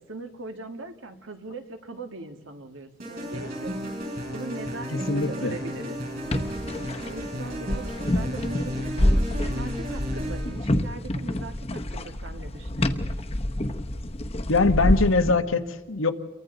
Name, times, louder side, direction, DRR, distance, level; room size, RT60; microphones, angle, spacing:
voice 1, 0.0-3.7 4.3-6.0 6.4-13.1, right 3 dB, 75° right, 6 dB, 2.0 m, -40 dB
sound 1, 3.0-10.6, equal, 45° right, 5.8 m, -34 dB
voice 2, 4.9-5.6 14.5-16.1, left 3 dB, 90° left, 9 dB, 1.3 m, -22 dB
sound 2, 6.2-15.3, left 1 dB, 30° left, 1.0 m, -27 dB
29.0 x 23.5 x 4.0 m, 1.2 s
head